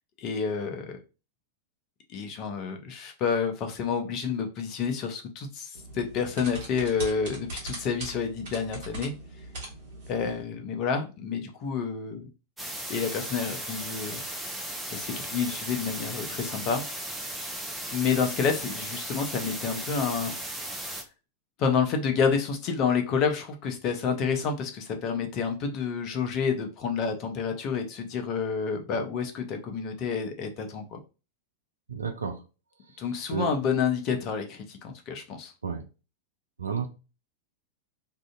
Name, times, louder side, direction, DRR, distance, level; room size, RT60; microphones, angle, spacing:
voice 1, 0.2-1.0 2.1-9.1 10.1-12.3 12.9-14.2 14.9-16.8 17.9-20.3 21.6-31.0 33.0-35.5, left 6 dB, 40° left, 0.6 m, -29 dB
sound 1, 5.7-10.4, right 2 dB, 55° right, 1.1 m, -40 dB
sound 2, 12.6-21.0, right 1 dB, 5° right, 0.6 m, -36 dB
voice 2, 31.9-32.4 33.3-33.5 35.6-35.8 36.6-36.9, right 6 dB, 75° right, 0.5 m, -31 dB
2.6 x 2.4 x 2.3 m
figure-of-eight pair, 90°, 0 cm